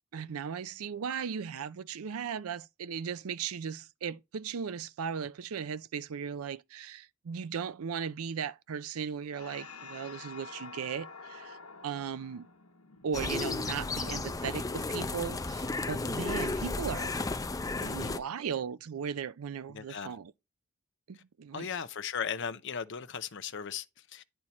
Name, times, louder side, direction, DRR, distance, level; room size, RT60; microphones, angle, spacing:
voice 1, 0.1-11.6 11.8-12.5 13.0-17.1 17.8-20.3 21.1-21.7, right 7 dB, 80° right, 0.5 m, -37 dB
sound 1, 9.3-14.1, left 4 dB, 80° left, 1.3 m, -49 dB
sound 2, 13.1-18.2, left 3 dB, 15° left, 0.5 m, -33 dB
voice 2, 17.7-18.2 19.7-20.2 21.1-21.2 21.5-24.2, left 7 dB, 55° left, 0.7 m, -37 dB
9.7 x 4.4 x 4.3 m
head